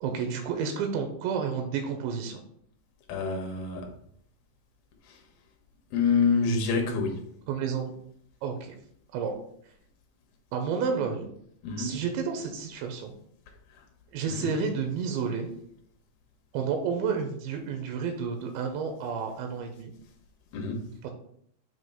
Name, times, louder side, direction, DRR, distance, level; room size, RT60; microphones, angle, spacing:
voice 1, 0.0-2.4 7.5-7.9 8.4-8.8 9.1-9.3 10.5-11.3 11.8-13.1 14.1-15.5 16.5-19.9 21.0-21.1, right 6 dB, 80° right, 4 dB, 3.0 m, -30 dB
voice 2, 3.1-3.9 5.9-7.2 11.6-12.0 14.4-14.5 20.5-20.9, left 5 dB, 70° left, 2 dB, 2.7 m, -26 dB
7.6 x 2.9 x 5.5 m, 0.67 s
omnidirectional pair, 5.1 m